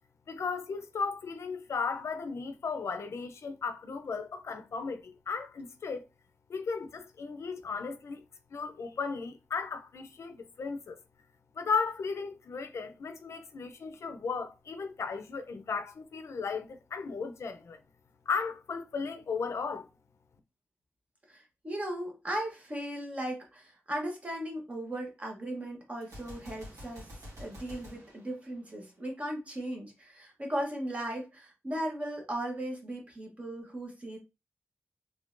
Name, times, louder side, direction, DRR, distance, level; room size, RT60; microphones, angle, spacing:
voice 1, 0.3-6.1 6.5-8.2 8.5-11.0 11.6-17.8 18.3-19.9, left 5 dB, 70° left, 0.5 m, -35 dB
voice 2, 21.3-27.1 27.4-34.2, right 1 dB, 25° right, 1.1 m, -37 dB
Gunshot gunfire, 26.0-29.1, equal, 80° right, 1.7 m, -48 dB
3.6 x 3.2 x 2.5 m
wide cardioid pair, 155°, 5 cm